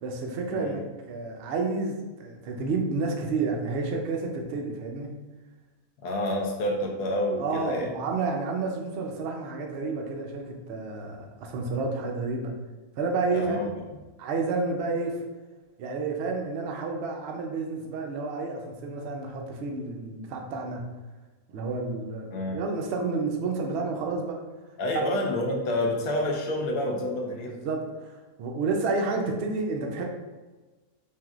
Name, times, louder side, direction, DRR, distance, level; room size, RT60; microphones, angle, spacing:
voice 1, 0.0-5.2 7.4-12.5 13.0-13.7 14.2-15.2 15.8-20.8 21.5-24.4 27.5-30.0, right 3 dB, 75° right, 2 dB, 0.6 m, -30 dB
voice 2, 6.0-7.9 13.3-13.7 22.3-22.6 24.8-27.5, left 1 dB, 75° left, 0 dB, 1.0 m, -28 dB
3.4 x 2.5 x 2.3 m, 1.2 s
omnidirectional pair, 1.6 m